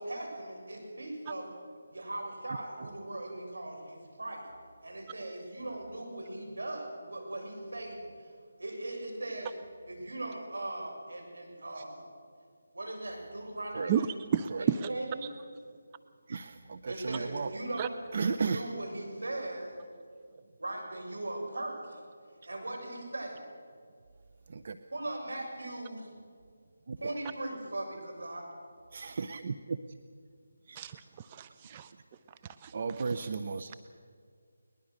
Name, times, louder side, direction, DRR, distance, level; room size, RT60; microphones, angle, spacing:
voice 1, 0.0-1.5 1.9-4.4 4.8-8.3 8.6-9.5 9.9-12.0 12.7-14.1 14.6-15.3 16.9-18.0 18.5-19.7 20.6-22.0 22.4-23.4 24.9-26.1 27.0-28.4, right 1 dB, 80° right, 2 dB, 7.2 m, -39 dB
voice 2, 2.5-2.9 11.7-11.8 13.7-13.9 14.4-14.7 16.3-17.6 18.1-18.7 24.5-24.8 26.9-27.1 28.9-30.0 30.6-30.8 31.7-31.8 32.7-33.7, right 4 dB, 45° right, 9 dB, 0.8 m, -35 dB
voice 3, 13.9-14.9 17.8-17.9 30.8-31.9 32.6-32.7, right 8 dB, 25° right, 9 dB, 0.5 m, -32 dB
21.5 x 20.5 x 6.6 m, 2.2 s
figure-of-eight pair, 160°, 0 cm